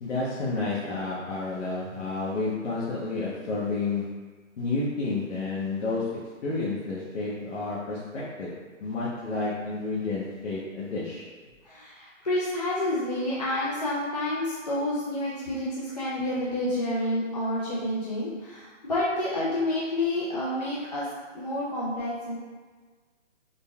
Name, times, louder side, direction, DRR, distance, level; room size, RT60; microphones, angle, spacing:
voice 1, 0.0-4.1 4.6-8.5 8.8-11.3, left 3 dB, 70° left, -7 dB, 0.9 m, -30 dB
voice 2, 11.6-21.1 21.3-22.4, left 1 dB, 35° left, -8 dB, 0.4 m, -29 dB
3.8 x 2.2 x 3.4 m, 1.4 s
hypercardioid pair, 170°, 38 cm